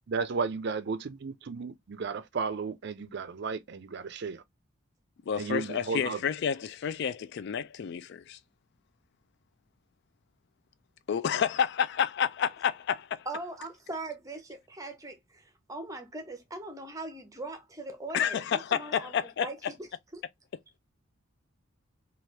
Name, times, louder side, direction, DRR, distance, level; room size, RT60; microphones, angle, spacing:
voice 1, 0.1-4.4 5.3-6.2, right 5 dB, 55° right, 0.4 m, -34 dB
voice 2, 5.3-8.4 11.1-13.3 18.1-19.5, left 8 dB, 55° left, 0.3 m, -29 dB
voice 3, 13.3-19.1 19.4-19.9 20.1-20.2, right 2 dB, 15° right, 0.7 m, -40 dB
3.2 x 2.4 x 2.7 m
head